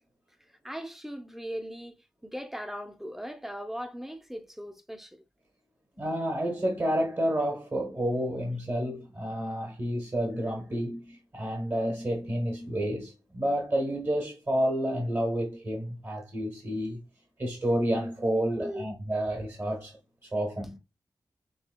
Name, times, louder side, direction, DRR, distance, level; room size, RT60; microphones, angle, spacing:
voice 1, 0.6-5.2 18.6-18.9, equal, 5° right, 0.6 m, -39 dB
voice 2, 6.0-17.0 17.4-20.0 20.2-20.8, equal, 35° right, 1.1 m, -30 dB
5.4 x 3.2 x 2.2 m
wide cardioid pair, 105°, 7 cm